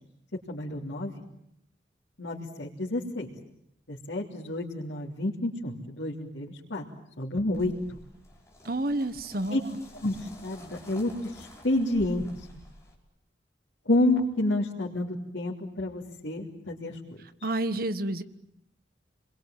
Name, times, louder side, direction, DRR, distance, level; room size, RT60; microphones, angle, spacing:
voice 1, 0.5-1.2 2.2-3.3 3.9-6.8 7.2-8.0 9.5-9.6 10.0-12.2 13.8-17.0, left 1 dB, 90° left, -6 dB, 3.2 m, -29 dB
sound 1, 7.5-12.9, left 1 dB, 15° left, 5.1 m, -50 dB
voice 2, 8.6-9.6 17.4-18.2, right 1 dB, 55° right, 11 dB, 1.3 m, -29 dB
30.0 x 22.0 x 9.1 m, 0.77 s
head